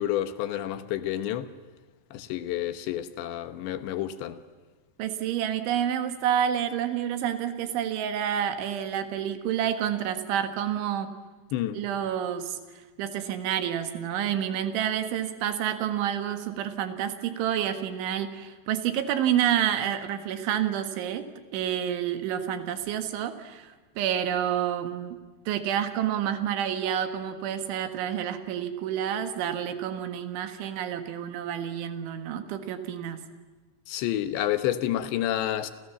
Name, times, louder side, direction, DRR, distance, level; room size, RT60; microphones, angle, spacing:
voice 1, 0.0-1.5 2.1-4.4 11.5-11.8 33.9-35.7, left 12 dB, 75° left, 3.4 m, -29 dB
voice 2, 5.0-11.1 11.8-12.6 13.0-21.2 21.5-25.2 25.5-33.2, right 10 dB, 85° right, 4.1 m, -29 dB
29.0 x 28.0 x 7.2 m
omnidirectional pair, 5.2 m